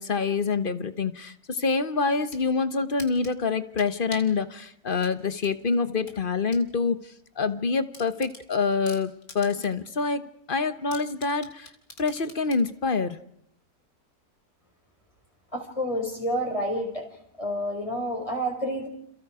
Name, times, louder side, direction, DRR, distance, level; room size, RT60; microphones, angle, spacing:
voice 1, 0.0-7.0 7.4-10.2 10.5-11.7 12.0-13.2, left 4 dB, 35° left, 12 dB, 1.1 m, -26 dB
sound 1, 2.0-2.5 3.0-4.4 5.0-6.7 7.0-7.1 7.5-7.6 7.9-9.9 10.2-10.3 10.9-12.7, left 3 dB, 65° left, 3.2 m, -45 dB
voice 2, 15.5-17.0 17.4-18.9, equal, 20° left, 2 dB, 5.3 m, -29 dB
29.5 x 28.5 x 5.0 m, 0.70 s
omnidirectional pair, 1.7 m